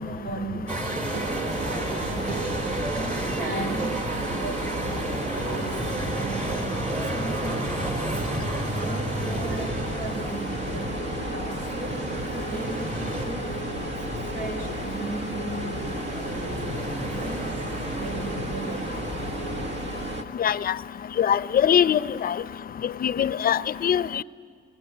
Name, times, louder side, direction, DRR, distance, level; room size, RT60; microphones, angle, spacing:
voice 1, 0.0-2.5 2.9-4.9 5.2-5.8 6.1-8.3 8.8-11.0 11.3-13.6 14.1-17.6 17.9-19.0, right 2 dB, 90° right, 4 dB, 4.3 m, -37 dB
sound 1, 0.7-19.8, right 2 dB, 35° right, 3.6 m, -33 dB
sound 2, 1.1-20.2, right 2 dB, 65° right, 1.8 m, -33 dB
voice 2, 21.2-22.3 23.0-24.2, left 9 dB, 45° left, 17 dB, 0.5 m, -22 dB
21.5 x 21.5 x 9.4 m, 2.2 s
cardioid pair, 90°, 20 cm